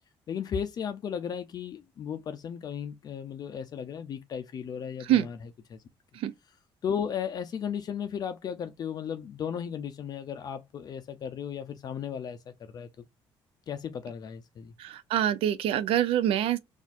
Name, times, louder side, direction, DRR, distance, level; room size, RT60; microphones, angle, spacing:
voice 1, 0.3-5.4 5.7-5.8 6.8-12.9 13.7-14.7, left 8 dB, 45° left, 0.4 m, -35 dB
voice 2, 14.8-16.6, right 11 dB, 75° right, 0.4 m, -25 dB
4.2 x 2.5 x 2.5 m
cardioid pair, 145°, 10 cm